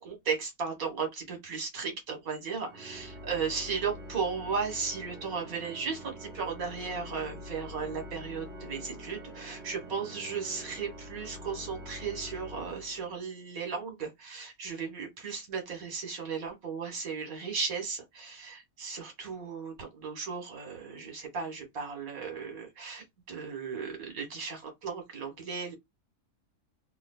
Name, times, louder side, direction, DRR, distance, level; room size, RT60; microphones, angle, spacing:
voice 1, 0.0-25.7, right 5 dB, 70° right, 2.0 m, -36 dB
Organ, 2.6-13.4, equal, 50° right, 1.5 m, -45 dB
3.3 x 3.3 x 2.4 m
omnidirectional pair, 1.6 m